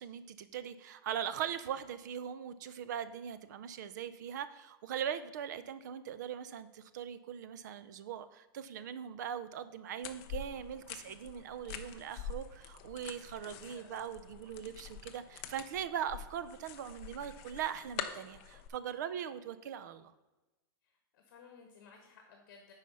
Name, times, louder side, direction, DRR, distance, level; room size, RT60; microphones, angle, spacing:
voice 1, 0.0-20.1, right 9 dB, 50° right, 13 dB, 0.5 m, -40 dB
sound 1, 10.0-18.7, left 8 dB, 25° left, 0.4 m, -46 dB
voice 2, 13.5-14.0 20.8-22.7, left 5 dB, 45° left, 3 dB, 1.1 m, -58 dB
8.5 x 4.9 x 5.5 m, 1.1 s
supercardioid pair, 175°, 13 cm